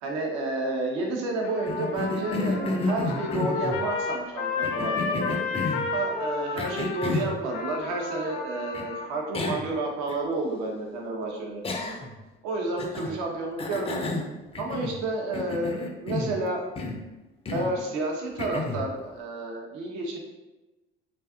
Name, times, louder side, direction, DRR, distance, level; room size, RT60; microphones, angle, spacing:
voice 1, 0.0-5.4 5.9-12.0 12.4-14.2 14.6-16.6 17.5-20.2, right 2 dB, 65° right, 0 dB, 0.7 m, -30 dB
Trumpet, 1.4-9.1, left 4 dB, 70° left, 0.6 m, -32 dB
Cough, 1.7-3.9 4.6-5.9 6.6-7.4 8.7-8.9 9.3-9.7 10.1-10.2 11.6-12.2 12.8-13.2 13.6-15.0 15.3-16.4 16.8-17.1 17.5-17.8 18.4-18.9, left 2 dB, 20° left, 0.4 m, -31 dB
2.5 x 2.4 x 2.4 m, 1.1 s
hypercardioid pair, 60°, 30 cm